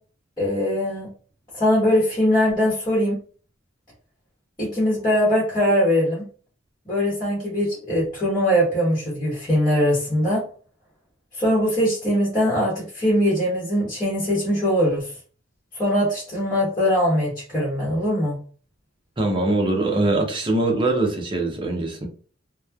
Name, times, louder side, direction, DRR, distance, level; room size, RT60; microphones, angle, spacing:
voice 1, 0.4-1.1 1.5-3.2 4.6-6.2 6.9-10.4 11.4-15.1 15.7-18.4, equal, 20° left, 1.1 m, -21 dB
voice 2, 19.2-22.1, right 2 dB, 25° right, 0.6 m, -22 dB
3.0 x 2.1 x 2.2 m
head